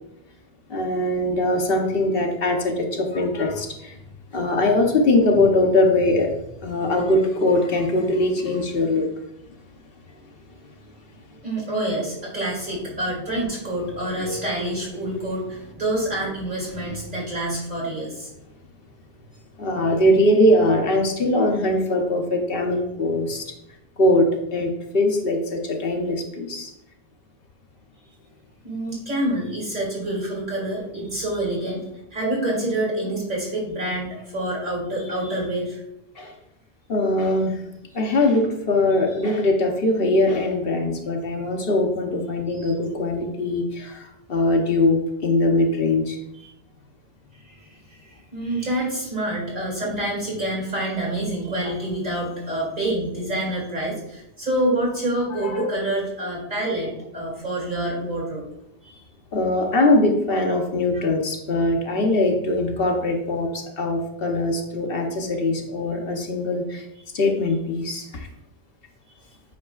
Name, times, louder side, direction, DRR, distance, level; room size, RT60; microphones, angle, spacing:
voice 1, 0.7-4.0 4.3-6.3 6.6-9.1 12.0-12.1 14.2-14.4 19.6-23.5 24.0-26.7 36.2-36.3 36.9-37.6 37.9-46.2 55.3-55.7 59.3-66.8 67.1-68.3, left 1 dB, 65° left, 2 dB, 1.1 m, -21 dB
voice 2, 11.4-18.3 28.6-31.9 32.1-35.8 42.5-42.7 46.3-46.5 47.4-58.4 58.8-59.0 60.9-61.0, right 1 dB, 50° right, -3 dB, 2.6 m, -27 dB
8.5 x 5.3 x 2.4 m, 0.85 s
omnidirectional pair, 1.0 m